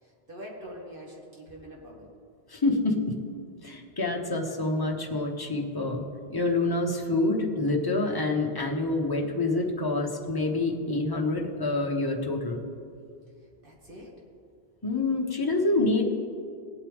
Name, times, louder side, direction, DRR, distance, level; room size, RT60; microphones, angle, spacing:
voice 1, 0.0-2.1 13.6-14.2, equal, 55° right, -2 dB, 2.3 m, -44 dB
voice 2, 2.5-3.1 3.6-6.0 6.3-12.6 14.8-16.0, left 2 dB, 20° left, 1 dB, 1.1 m, -27 dB
19.0 x 8.3 x 3.6 m, 2.3 s
omnidirectional pair, 1.1 m